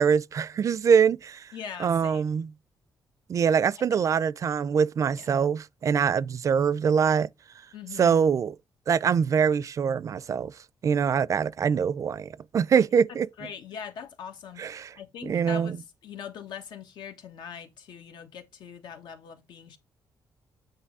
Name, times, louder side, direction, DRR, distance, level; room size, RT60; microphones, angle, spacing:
voice 1, 0.0-1.5 1.8-2.5 3.3-7.3 8.0-8.5 8.9-10.5 10.8-13.3 14.6-14.9 15.2-15.8, right 7 dB, 45° right, 0.4 m, -24 dB
voice 2, 1.5-2.2 3.8-3.9 5.2-5.3 7.7-8.3 12.7-19.8, left 7 dB, 80° left, 1.3 m, -42 dB
8.3 x 3.1 x 4.7 m
cardioid pair, 110°, 7 cm